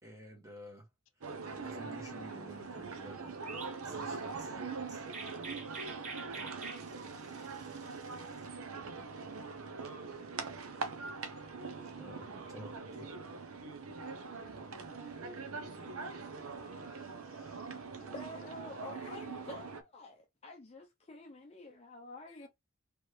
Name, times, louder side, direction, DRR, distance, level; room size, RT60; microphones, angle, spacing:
voice 1, 0.0-0.8 1.6-3.4 3.8-4.3 12.0-13.2, equal, 15° right, 1.5 m, -50 dB
sound 1, 1.2-19.8, right 4 dB, 80° right, 0.8 m, -43 dB
Chirp tweet, 3.5-8.6, right 4 dB, 35° right, 1.0 m, -47 dB
voice 2, 16.9-17.7 19.0-19.2 22.3-22.5, left 8 dB, 65° left, 0.7 m, -65 dB
voice 3, 18.1-22.5, left 1 dB, 30° left, 0.6 m, -48 dB
4.6 x 3.2 x 3.1 m
head